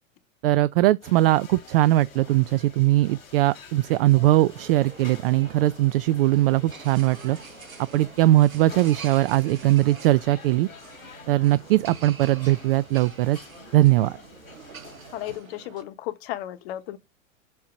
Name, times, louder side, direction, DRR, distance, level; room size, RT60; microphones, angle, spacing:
voice 1, 0.4-7.4 7.8-10.7 11.3-13.4 13.7-14.2, right 16 dB, 45° right, 0.4 m, -20 dB
sound 1, 1.0-15.4, left 5 dB, 75° left, 2.4 m, -48 dB
sound 2, 3.7-15.8, right 6 dB, 85° right, 1.3 m, -46 dB
voice 2, 15.1-17.0, left 14 dB, 50° left, 1.2 m, -34 dB
7.5 x 2.8 x 5.8 m
hypercardioid pair, 105°, 40 cm